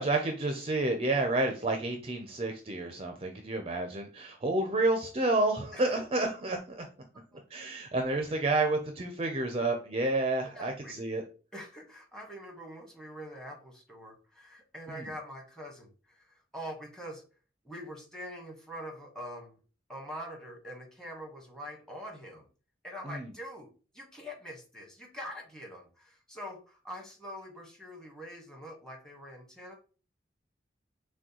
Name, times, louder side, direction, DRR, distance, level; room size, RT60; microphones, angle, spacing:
voice 1, 0.0-6.8 7.5-11.2 14.9-15.1 23.0-23.3, right 2 dB, 35° right, 4 dB, 0.5 m, -30 dB
voice 2, 10.5-11.2 11.5-17.2 17.6-19.6 19.9-22.4 22.8-23.7 23.9-29.8, equal, 5° left, 1 dB, 1.2 m, -44 dB
6.0 x 2.2 x 2.9 m, 0.36 s
head